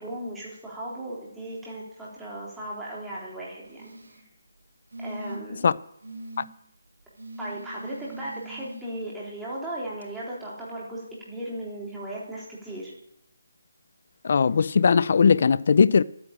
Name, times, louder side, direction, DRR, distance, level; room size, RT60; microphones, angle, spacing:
voice 1, 0.0-4.2 5.0-5.7 7.4-12.9, right 1 dB, 5° right, 3.7 m, -36 dB
sound 1, 3.6-4.2 4.9-5.6 6.0-6.5 7.2-8.8 10.0-10.1, right 1 dB, 70° right, 4.4 m, -40 dB
voice 2, 14.2-16.0, left 6 dB, 45° left, 0.5 m, -19 dB
12.5 x 9.7 x 8.8 m
figure-of-eight pair, 165°, 0 cm